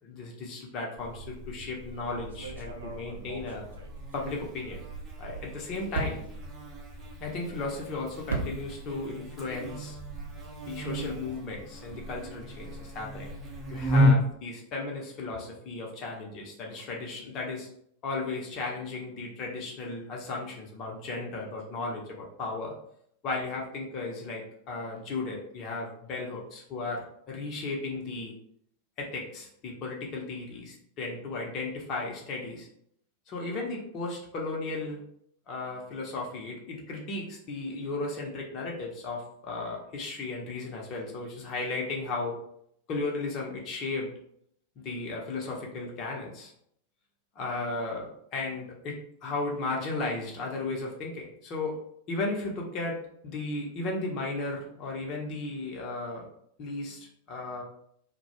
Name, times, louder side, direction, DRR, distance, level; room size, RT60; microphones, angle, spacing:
voice 1, 0.0-3.6 4.1-4.8 5.2-6.2 7.2-10.0 10.6-13.3 13.7-17.7 18.0-22.7 23.2-28.3 29.0-32.7 33.3-35.0 35.5-42.4 42.9-44.1 44.8-46.5 47.4-51.8 52.1-53.0 53.2-56.2 56.6-57.6, left 3 dB, 35° left, -1 dB, 0.6 m, -35 dB
Buzz, 1.0-14.1, left 1 dB, 20° right, 0.6 m, -33 dB
sound 1, 2.0-4.7 5.0-9.1 9.3-10.6, right 4 dB, 65° right, 0.5 m, -39 dB
2.1 x 2.0 x 2.9 m, 0.69 s
figure-of-eight pair, 90°, 0 cm